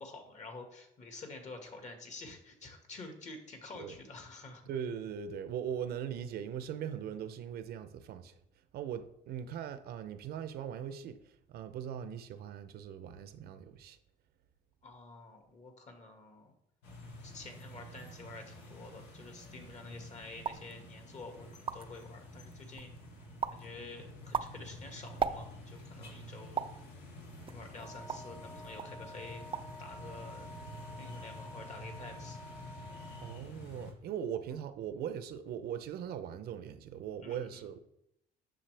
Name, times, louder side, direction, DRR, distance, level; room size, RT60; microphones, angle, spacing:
voice 1, 0.0-4.6 14.8-16.5 17.2-22.9 23.5-26.7 27.5-29.5 29.8-30.5 31.0-32.4 37.2-37.6, left 3 dB, 45° left, 1.8 m, -49 dB
voice 2, 4.7-8.3 8.7-11.2 11.5-14.0 33.2-37.8, right 8 dB, 70° right, 0.7 m, -40 dB
sound 1, 16.8-33.9, left 1 dB, 85° left, 2.1 m, -49 dB
sound 2, 20.4-20.7 21.2-21.3 21.5-22.0 22.5-23.0 23.4-23.7 24.1-25.8 26.6-26.8 27.5-28.4 28.8-29.0 29.3-29.8 30.1-30.6, right 7 dB, 30° right, 0.4 m, -37 dB
Wind instrument woodwind instrument, 27.8-33.5, left 1 dB, 20° left, 0.9 m, -50 dB
10.0 x 6.5 x 3.4 m
cardioid pair, 110°, 17 cm